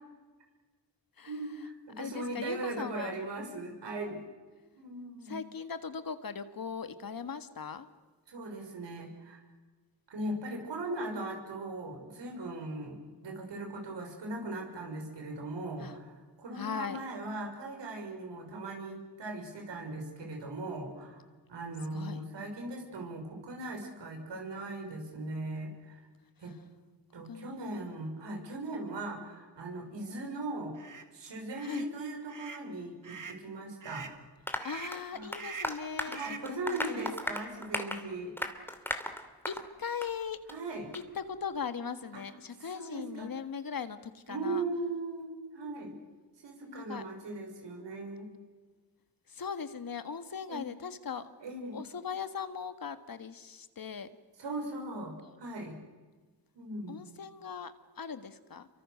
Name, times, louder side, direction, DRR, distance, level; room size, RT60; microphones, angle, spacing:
voice 1, 1.3-4.3 4.7-5.4 8.3-9.4 10.1-13.0 13.2-21.2 21.5-26.1 26.4-26.5 27.1-30.7 31.1-34.1 35.1-35.3 36.0-38.3 40.5-40.9 42.1-42.2 42.6-43.3 44.3-46.0 46.4-48.3 50.5-50.7 51.4-51.8 54.4-55.8 56.5-57.0, right 2 dB, 80° right, 3 dB, 6.4 m, -39 dB
voice 2, 2.0-3.2 5.3-7.9 15.8-16.0 16.6-17.0 21.9-22.2 27.3-27.6 31.6-31.9 34.6-37.1 39.5-40.4 40.9-44.6 46.7-47.1 49.3-51.3 51.7-54.1 56.9-58.7, left 6 dB, 55° left, 10 dB, 1.8 m, -39 dB
sound 1, 30.8-31.0 31.5-31.9 32.3-32.7 33.0-33.4 33.8-34.2 34.6-35.0 35.4-35.8 36.1-36.5, right 5 dB, 45° right, 2.2 m, -44 dB
Applause, 34.5-39.7 40.0-40.1 40.5-40.6 40.9-41.0, left 1 dB, 5° left, 2.8 m, -37 dB
28.0 x 24.0 x 6.6 m, 1.4 s
cardioid pair, 70°, 42 cm